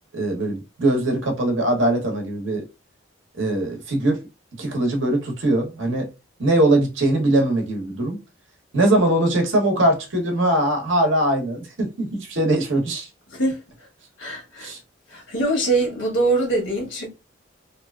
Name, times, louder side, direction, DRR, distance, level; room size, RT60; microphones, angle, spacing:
voice 1, 0.1-2.6 3.4-4.2 4.6-6.1 6.4-8.2 8.7-13.1 14.6-14.8, right 1 dB, 75° right, 0.9 m, -21 dB
voice 2, 13.3-13.6 14.2-14.7 15.1-17.1, right 2 dB, 75° left, 1.1 m, -23 dB
2.7 x 2.4 x 2.2 m
head